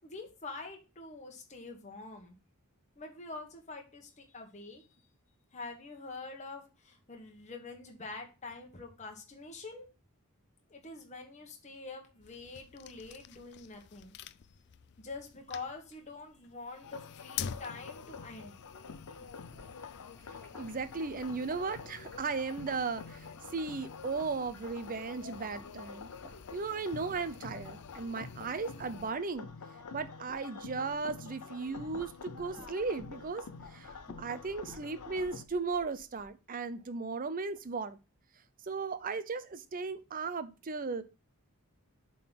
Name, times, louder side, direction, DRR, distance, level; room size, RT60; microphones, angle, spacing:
voice 1, 0.0-2.4 3.0-4.9 5.5-9.9 10.7-14.2 15.0-18.6, left 3 dB, 30° left, 1.3 m, -46 dB
sound 1, 12.2-29.1, left 8 dB, 50° left, 0.3 m, -49 dB
sound 2, 16.8-35.5, left 5 dB, 90° left, 0.6 m, -48 dB
sound 3, 18.9-24.9 25.2-31.2 31.5-36.3, equal, 10° left, 1.9 m, -58 dB
voice 2, 20.6-23.3 23.5-26.1 26.5-29.5 29.9-33.4 33.7-38.0 38.6-41.0, right 4 dB, 40° right, 0.6 m, -36 dB
7.5 x 3.9 x 5.7 m
head